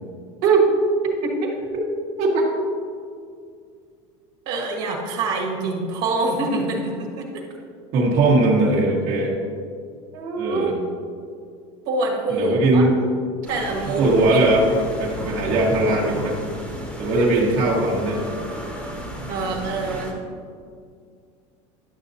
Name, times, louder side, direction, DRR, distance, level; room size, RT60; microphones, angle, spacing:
voice 1, 1.2-1.5 4.4-7.4 10.1-10.7 11.9-12.8 13.5-14.4 17.1-17.3 19.3-20.1, right 4 dB, 65° right, -1 dB, 1.5 m, -24 dB
voice 2, 2.2-2.5 7.9-9.3 10.4-10.7 12.3-13.0 14.0-16.4 17.0-18.2, right 2 dB, 50° right, -4 dB, 1.3 m, -19 dB
sound 1, 13.4-20.1, equal, 10° left, 1.1 m, -33 dB
11.0 x 6.5 x 2.7 m, 2.2 s
supercardioid pair, 145°, 16 cm